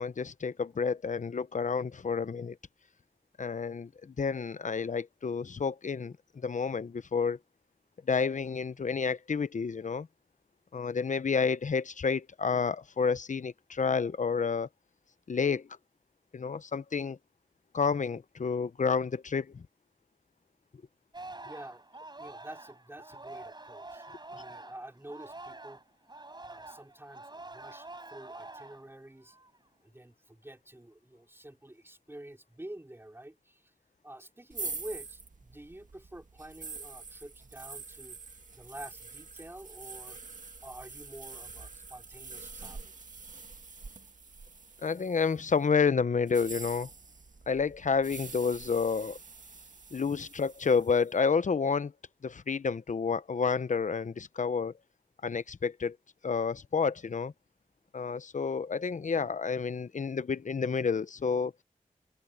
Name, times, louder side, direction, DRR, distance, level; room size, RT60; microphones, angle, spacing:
voice 1, 0.0-2.6 3.4-6.1 6.4-7.4 8.1-10.1 10.7-14.7 15.3-15.7 16.3-17.2 17.7-19.6 44.8-46.9 47.5-49.2 49.9-51.9 52.2-54.7 55.2-56.0 56.2-57.3 57.9-61.5, left 5 dB, 60° left, 0.8 m, -30 dB
Singing, 21.1-25.8 26.1-28.9 29.3-29.6, right 2 dB, 30° right, 4.1 m, -47 dB
voice 2, 21.4-21.8 22.2-25.8 26.5-29.4 29.8-33.7 34.0-38.2 38.5-40.2 40.6-42.9, right 1 dB, 15° right, 4.3 m, -48 dB
sound 1, 34.5-45.5 46.2-51.1, right 4 dB, 60° right, 2.1 m, -45 dB
wide cardioid pair, 75°, 14 cm